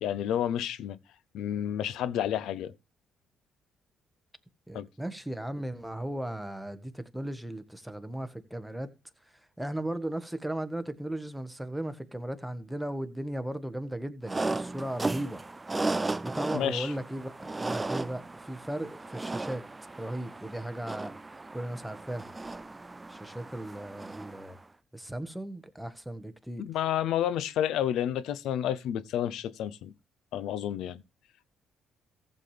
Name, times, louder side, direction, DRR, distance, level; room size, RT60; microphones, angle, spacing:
voice 1, 0.0-1.0 1.3-2.7 4.7-4.9 16.5-16.9 26.6-29.9 30.3-31.0, left 10 dB, 80° left, 0.7 m, -30 dB
voice 2, 4.7-8.9 9.2-15.4 16.2-19.6 20.0-22.3 23.1-24.6 24.9-26.6, right 1 dB, 5° right, 1.5 m, -36 dB
sound 1, 14.3-24.6, right 2 dB, 20° right, 0.4 m, -36 dB
15.0 x 7.5 x 3.4 m
supercardioid pair, 65°, 0 cm